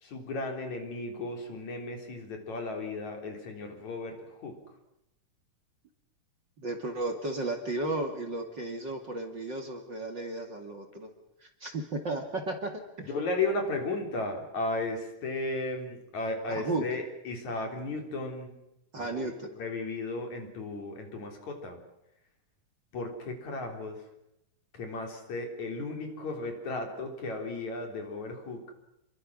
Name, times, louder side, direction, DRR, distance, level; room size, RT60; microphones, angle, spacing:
voice 1, 0.0-4.6 13.0-18.6 19.0-21.8 22.9-24.0 24.7-28.6, left 2 dB, 60° left, 3 dB, 4.9 m, -35 dB
voice 2, 6.6-11.1 11.4-12.7 13.0-13.1 16.5-16.8 18.9-19.5, right 2 dB, 35° right, 4 dB, 2.5 m, -34 dB
28.5 x 23.0 x 6.4 m, 0.87 s
omnidirectional pair, 3.8 m